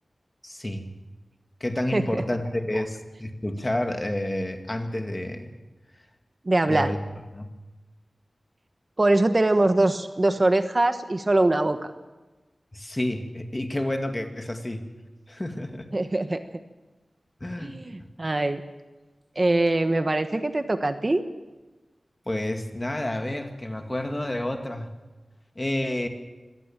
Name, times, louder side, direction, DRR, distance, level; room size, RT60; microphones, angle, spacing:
voice 1, 0.4-0.9 1.6-5.5 6.7-7.0 7.3-7.5 12.7-14.8 15.3-15.9 17.4-17.7 22.3-24.9 25.6-26.1, left 1 dB, 25° left, 5 dB, 2.4 m, -29 dB
voice 2, 1.9-2.2 6.4-6.9 9.0-11.9 15.9-16.4 17.6-17.9 18.2-18.6 19.4-21.2, right 2 dB, 35° right, 9 dB, 1.2 m, -22 dB
25.0 x 18.0 x 7.4 m, 1.2 s
wide cardioid pair, 80°, 0 cm